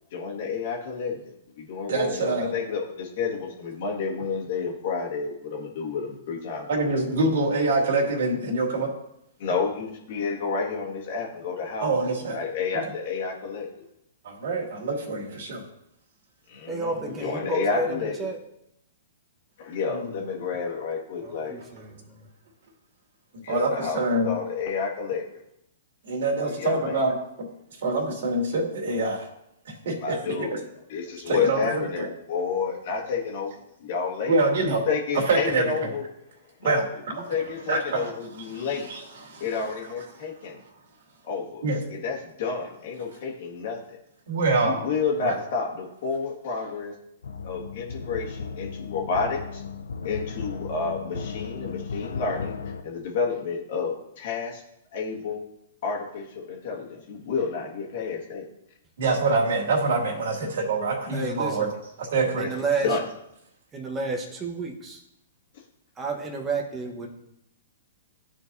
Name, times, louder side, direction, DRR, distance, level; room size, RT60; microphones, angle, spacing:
voice 1, 0.1-7.0 9.4-11.9 12.3-13.7 16.5-18.3 19.6-21.6 23.4-25.2 26.4-27.0 30.0-30.6 30.9-33.5 33.8-34.3 34.6-36.0 36.6-36.8 37.1-38.9 39.4-40.6 41.2-41.6 41.9-44.0 44.6-46.9 47.4-49.6 50.0-52.6 52.8-54.6 54.9-55.4 55.8-58.5 62.8-63.0, left 5 dB, 55° left, -1 dB, 1.8 m, -30 dB
voice 2, 1.9-2.5 6.7-8.9 11.8-12.4 12.7-12.8 14.2-15.6 19.9-20.1 23.5-24.4 26.0-27.1 27.8-29.3 29.7-30.5 31.3-32.1 34.3-34.9 35.1-35.9 36.6-37.3 37.7-38.1 38.5-39.0 39.2-39.4 41.6-41.8 44.3-44.8 45.2-45.4 59.0-61.7 62.0-62.5, right 3 dB, 60° right, -2 dB, 2.4 m, -25 dB
voice 3, 16.7-18.4 21.2-22.2 61.1-61.7 62.4-62.9 63.7-65.0 66.0-67.1, right 3 dB, 20° right, 1 dB, 1.2 m, -31 dB
sound 1, 47.2-52.8, left 5 dB, 80° left, 0.5 m, -35 dB
13.0 x 4.5 x 2.7 m, 0.80 s
hypercardioid pair, 120°, 0 cm